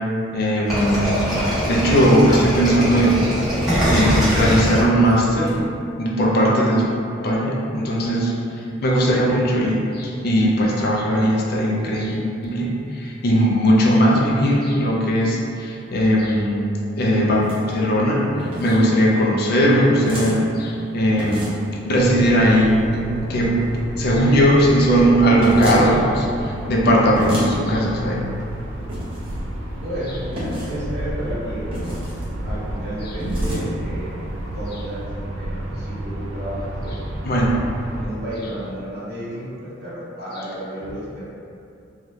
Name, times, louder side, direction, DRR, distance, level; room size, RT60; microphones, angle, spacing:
voice 1, 0.3-1.3 1.6-3.3 3.9-5.6 6.0-6.9 7.2-8.3 8.8-21.6 21.8-23.6 24.0-28.2 37.2-37.6, equal, 50° left, -3 dB, 0.4 m, -18 dB
sound 1, 0.7-5.5, equal, ahead, 1.0 m, -21 dB
sound 2, 17.3-17.6 18.4-18.8 20.0-20.4 21.2-21.7 25.4-25.9 27.2-27.5 28.9-29.3 30.4-30.8 31.7-32.2 33.2-33.6, equal, 30° right, 0.7 m, -29 dB
sound 3, 21.9-38.1, right 1 dB, 85° right, 0.4 m, -30 dB
voice 2, 29.8-30.2 30.7-32.0 32.4-34.1 34.4-37.1 38.0-41.2, right 1 dB, 55° right, -10 dB, 1.2 m, -32 dB
2.6 x 2.3 x 3.3 m, 2.6 s
head